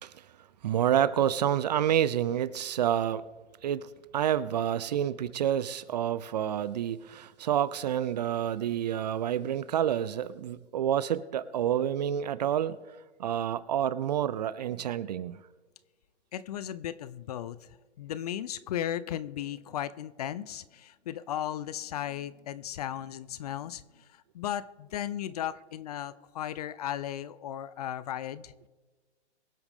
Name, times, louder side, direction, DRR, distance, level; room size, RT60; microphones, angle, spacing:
voice 1, 0.6-3.3 3.6-12.8 13.2-15.4, right 10 dB, 40° right, 18 dB, 0.4 m, -28 dB
voice 2, 16.3-17.7 18.0-28.7, left 11 dB, 35° left, 17 dB, 0.5 m, -36 dB
23.5 x 8.0 x 3.6 m, 1.3 s
hypercardioid pair, 135°, 34 cm